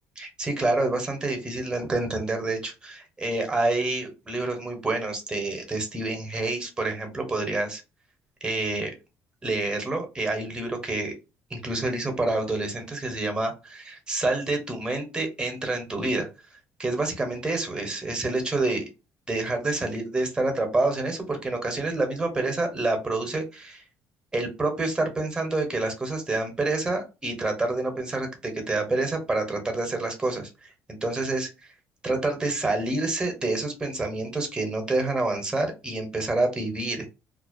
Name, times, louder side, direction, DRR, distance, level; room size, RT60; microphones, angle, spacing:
voice 1, 0.2-7.8 8.4-9.0 9.4-11.1 11.5-16.3 16.8-18.8 19.3-23.8 24.3-30.7 31.0-31.5 32.0-37.1, right 2 dB, 15° right, 4 dB, 0.8 m, -28 dB
2.4 x 2.1 x 2.4 m, 0.28 s
cardioid pair, 110°, 6 cm